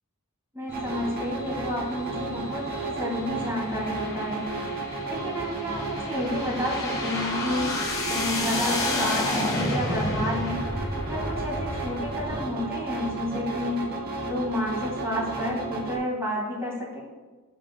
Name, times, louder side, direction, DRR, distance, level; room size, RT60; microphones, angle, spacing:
voice 1, 0.5-7.8 8.1-10.6 11.1-13.9 14.2-17.0, left 1 dB, 15° right, -4 dB, 2.7 m, -31 dB
sound 1, 0.7-12.4, left 2 dB, 20° left, 1.7 m, -32 dB
sound 2, 0.7-16.0, right 3 dB, 50° right, 1.6 m, -33 dB
17.0 x 6.3 x 2.3 m, 1.3 s
head